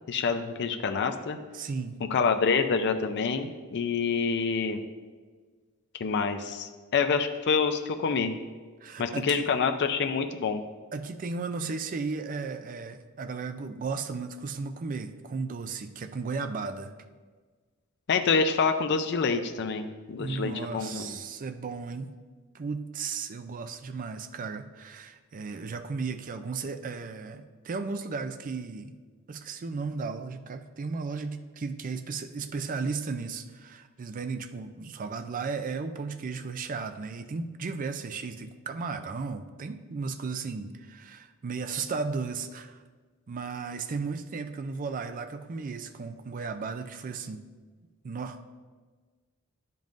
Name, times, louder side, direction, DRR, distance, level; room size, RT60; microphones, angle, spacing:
voice 1, 0.1-1.4 2.1-4.8 6.0-8.4 9.0-10.6 18.1-21.2, left 5 dB, 55° left, 7 dB, 0.4 m, -27 dB
voice 2, 1.5-2.0 8.8-9.5 10.9-16.9 20.2-22.1 22.5-29.0 29.3-42.8 43.3-47.4 48.0-48.5, right 4 dB, 40° right, 9 dB, 0.4 m, -35 dB
10.5 x 5.3 x 2.5 m, 1.5 s
head